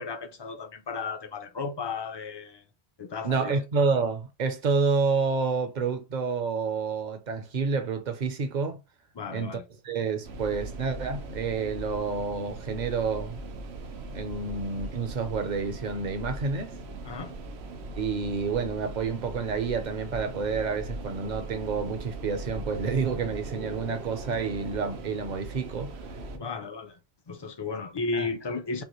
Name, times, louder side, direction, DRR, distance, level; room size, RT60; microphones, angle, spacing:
voice 1, 0.0-2.6 3.0-3.6 9.1-9.7 17.0-17.4 26.3-27.0 27.3-28.8, left 4 dB, 30° left, 0.5 m, -34 dB
voice 2, 3.2-8.8 9.3-9.6 9.8-13.4 14.1-16.8 18.0-25.9 28.1-28.3, right 4 dB, 50° right, 0.8 m, -29 dB
sound 1, 10.2-26.4, right 2 dB, 85° right, 1.0 m, -39 dB
5.5 x 2.1 x 3.0 m
omnidirectional pair, 1.1 m